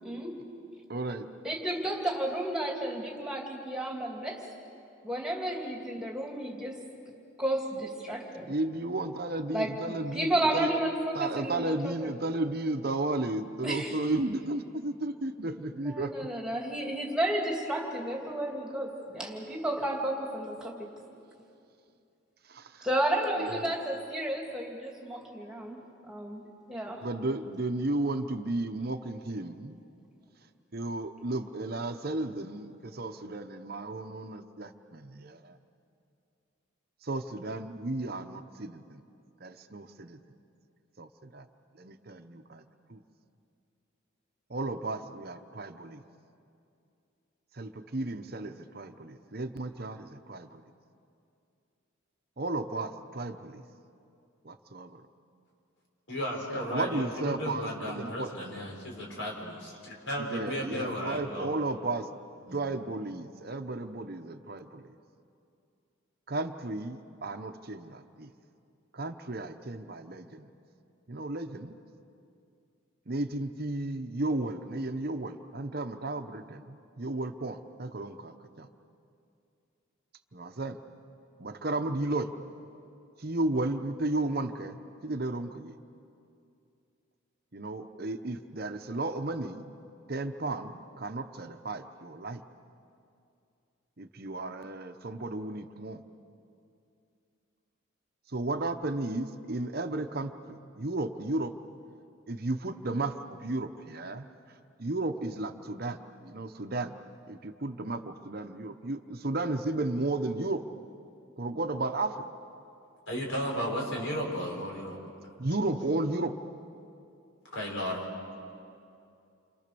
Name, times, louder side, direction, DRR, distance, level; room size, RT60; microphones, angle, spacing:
voice 1, 0.0-0.4 1.4-4.4 5.0-6.8 7.4-8.5 9.5-9.7 10.1-11.9 13.6-14.0 15.7-20.9 22.8-25.8 26.1-26.4 26.7-27.1, right 1 dB, 5° right, -1 dB, 2.8 m, -32 dB
voice 2, 0.9-1.3 8.5-10.7 11.1-16.1 22.5-22.9 23.4-23.7 27.0-29.8 30.7-35.6 37.0-39.0 39.4-40.2 41.0-41.5 41.8-42.6 42.9-43.0 44.5-46.0 47.5-50.6 52.4-53.6 54.4-55.0 56.7-58.3 60.2-62.1 62.5-64.9 66.3-68.3 68.9-70.5 71.1-71.8 73.1-78.7 80.3-80.8 81.4-82.3 83.2-85.8 87.5-89.6 90.1-92.4 94.0-96.0 98.3-101.5 102.3-104.3 104.8-107.0 107.3-110.6 111.4-112.2 115.4-116.3, right 2 dB, 45° right, 7 dB, 0.9 m, -34 dB
voice 3, 56.1-61.5 62.4-62.6 113.1-115.0 117.5-118.1, equal, 65° left, -1 dB, 5.5 m, -34 dB
29.0 x 26.0 x 6.9 m, 2.5 s
head